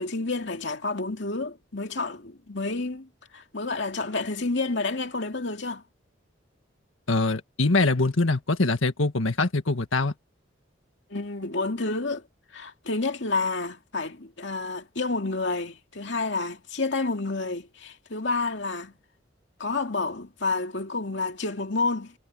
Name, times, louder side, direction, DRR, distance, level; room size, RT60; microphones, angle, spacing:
voice 1, 0.0-5.8 11.1-12.3 12.5-18.9 19.6-22.1, left 3 dB, 65° left, 2.5 m, -29 dB
voice 2, 7.1-10.1, left 2 dB, 85° left, 1.7 m, -23 dB
head